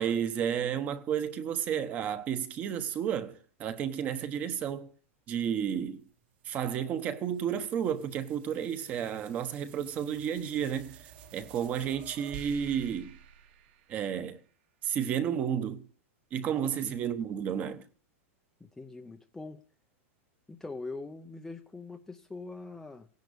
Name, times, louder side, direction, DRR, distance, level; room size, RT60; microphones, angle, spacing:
voice 1, 0.0-4.9 5.3-6.0 6.4-11.1 11.3-13.2 13.9-14.4 14.8-15.8 16.3-17.9, right 8 dB, 20° right, 1.1 m, -32 dB
sound 1, 5.9-14.5, right 9 dB, 45° right, 1.6 m, -52 dB
voice 2, 16.4-16.9 18.6-19.6 20.5-23.1, left 3 dB, 5° left, 0.7 m, -43 dB
17.5 x 10.5 x 6.8 m
supercardioid pair, 175°, 7 cm